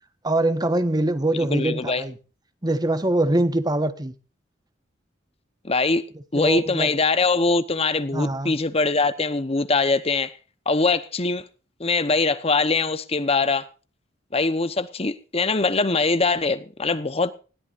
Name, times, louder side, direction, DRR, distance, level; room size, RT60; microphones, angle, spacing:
voice 1, 0.2-2.2 2.6-4.1 6.3-6.9 8.1-8.5, right 2 dB, 20° right, 1.3 m, -23 dB
voice 2, 1.5-2.0 5.6-6.0 6.3-10.3 10.7-11.4 11.8-13.7 14.3-17.3, left 3 dB, 30° left, 0.9 m, -22 dB
20.5 x 16.5 x 2.6 m
head